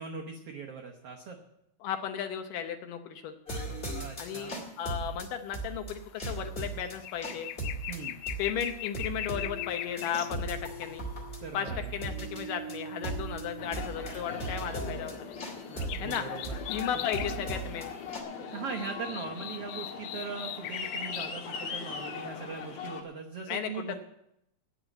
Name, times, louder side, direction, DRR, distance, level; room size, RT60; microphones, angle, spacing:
voice 1, 0.0-1.4 3.9-4.6 7.9-8.2 11.4-11.9 15.7-16.5 16.9-17.0 18.4-23.9, right 5 dB, 85° right, 1 dB, 1.3 m, -40 dB
voice 2, 1.8-3.4 4.2-7.5 8.4-11.0 11.5-15.4 16.0-16.3 16.7-17.9 23.5-23.9, left 8 dB, 75° left, 7 dB, 2.2 m, -35 dB
sound 1, 3.5-18.2, right 2 dB, 25° left, 1.5 m, -38 dB
sound 2, 6.0-6.1 6.4-10.3 11.1-11.9 13.8-14.0 14.5-15.5 15.8-17.4 17.8-17.9 18.1-21.4 21.8-22.5 22.7-22.8, left 13 dB, 90° left, 2.5 m, -40 dB
Aircraft, 13.6-23.0, left 5 dB, 55° left, 2.2 m, -40 dB
9.4 x 8.4 x 9.0 m, 0.80 s
omnidirectional pair, 4.3 m